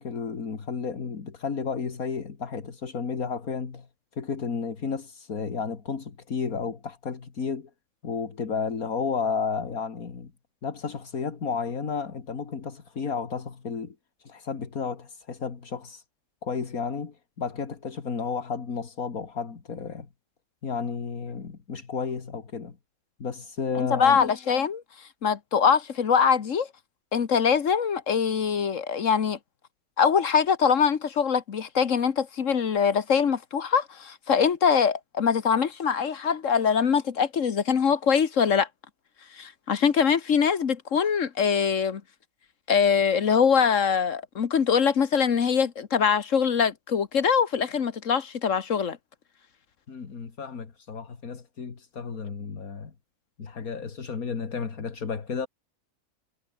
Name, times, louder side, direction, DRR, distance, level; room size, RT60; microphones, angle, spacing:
voice 1, 0.0-3.9 4.1-7.7 8.0-10.3 10.6-16.0 16.4-20.1 20.6-22.8 23.2-24.2 49.9-52.9 53.4-55.5, left 5 dB, 75° left, 2.6 m, -32 dB
voice 2, 23.7-24.8 25.2-26.7 27.1-29.4 30.0-38.7 39.4-42.0 42.7-49.0, left 6 dB, 60° left, 1.6 m, -23 dB
omnidirectional pair, 1.5 m